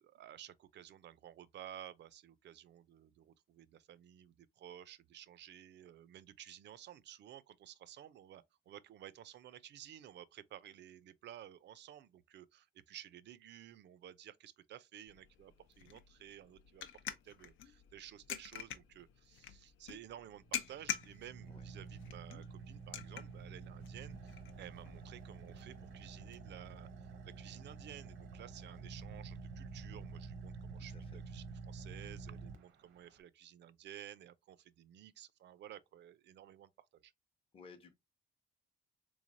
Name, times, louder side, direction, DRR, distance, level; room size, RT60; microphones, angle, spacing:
voice 1, 0.0-16.9 17.2-37.1, right 11 dB, 60° right, 0.4 m, -54 dB
sound 1, 15.1-26.4, left 10 dB, 75° left, 0.6 m, -48 dB
Car / Idling, 20.3-33.2, right 4 dB, 90° right, 0.8 m, -49 dB
voice 2, 30.8-31.2 37.5-37.9, left 4 dB, 30° left, 0.7 m, -57 dB
3.6 x 3.2 x 2.5 m
cardioid pair, 90°, 20 cm